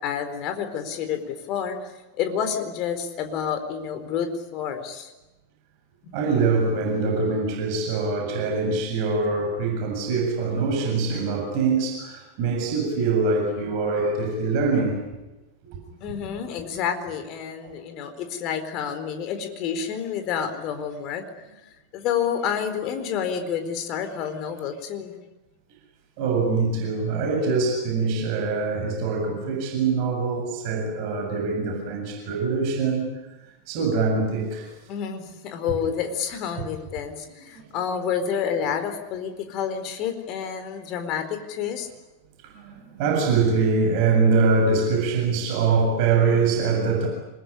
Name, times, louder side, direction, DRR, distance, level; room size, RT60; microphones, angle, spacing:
voice 1, 0.0-5.1 6.0-6.1 15.9-21.5 21.9-25.2 34.9-41.9, left 7 dB, 40° left, 4.2 m, -29 dB
voice 2, 6.1-15.0 17.6-17.7 26.2-33.1 33.7-34.7 35.7-35.8 37.5-37.8 42.4-47.1, right 4 dB, 45° right, 7.5 m, -23 dB
27.5 x 21.5 x 10.0 m
figure-of-eight pair, 90°, 0 cm